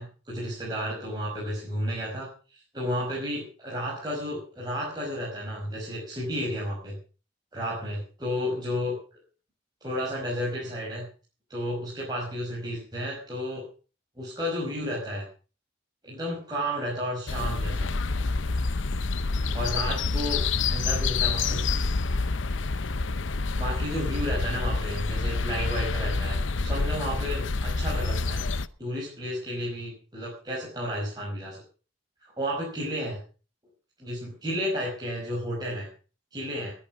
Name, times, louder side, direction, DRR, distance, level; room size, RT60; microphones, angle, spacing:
voice 1, 0.0-7.0 7.5-8.9 9.8-11.1 11.5-13.6 14.2-15.3 16.0-17.9 19.5-20.4 20.7-21.7 23.5-28.5 28.8-31.6 32.2-33.2 34.0-35.9 36.3-36.7, equal, 20° right, -5 dB, 5.5 m, -32 dB
sound 1, 17.3-28.7, left 3 dB, 80° left, 0.8 m, -27 dB
21.5 x 8.6 x 6.0 m, 0.38 s
head